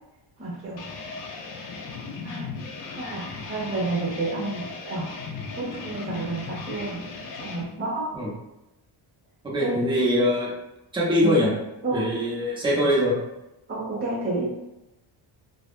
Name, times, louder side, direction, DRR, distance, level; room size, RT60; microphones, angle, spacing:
voice 1, 0.4-0.8 2.2-2.5 3.0-5.1 5.5-7.0 7.3-8.1 9.6-9.8 11.2-11.3 11.8-12.0 13.7-14.5, right 2 dB, 25° right, -4 dB, 0.9 m, -30 dB
sound 1, 0.8-7.6, left 4 dB, 45° left, 0.4 m, -37 dB
voice 2, 9.4-10.5 10.9-11.5 11.9-13.2, equal, 10° right, -6 dB, 0.5 m, -22 dB
3.2 x 2.0 x 2.4 m, 0.94 s
cardioid pair, 170°, 47 cm